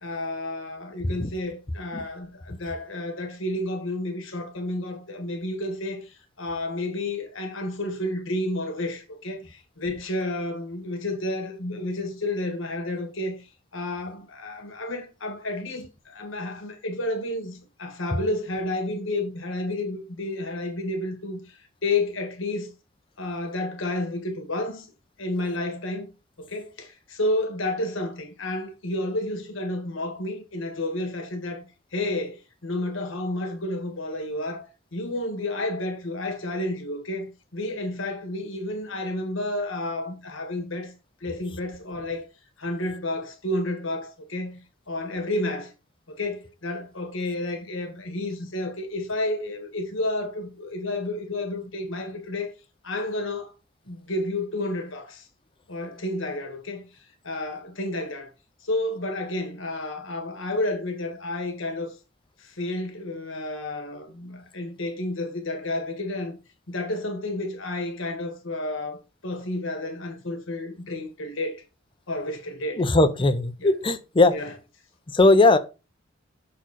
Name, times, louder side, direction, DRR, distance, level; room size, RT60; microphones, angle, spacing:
voice 1, 0.0-22.7 23.2-24.9 25.2-26.1 26.4-31.6 31.9-40.9 41.2-42.3 42.6-44.6 44.9-45.7 46.1-52.5 52.8-53.5 53.9-55.3 55.7-56.8 57.2-58.3 58.6-61.9 62.4-66.4 66.7-71.6 72.1-73.3 73.6-73.7 74.3-74.6, left 1 dB, 70° left, 1.5 m, -31 dB
voice 2, 72.8-74.3 75.2-75.6, left 2 dB, 25° left, 0.6 m, -18 dB
6.2 x 4.2 x 4.1 m
head